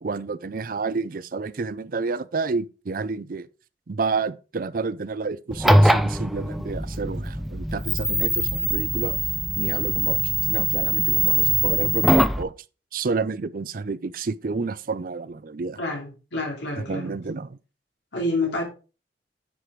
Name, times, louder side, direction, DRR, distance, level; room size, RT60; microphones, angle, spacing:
voice 1, 0.0-3.5 3.9-9.2 9.5-12.5 12.9-15.8 16.8-17.6, right 4 dB, 50° right, 0.5 m, -30 dB
sound 1, 5.5-12.4, right 1 dB, ahead, 0.4 m, -22 dB
voice 2, 15.8-17.1 18.1-18.6, left 2 dB, 80° left, 2.9 m, -28 dB
10.0 x 5.0 x 4.6 m
head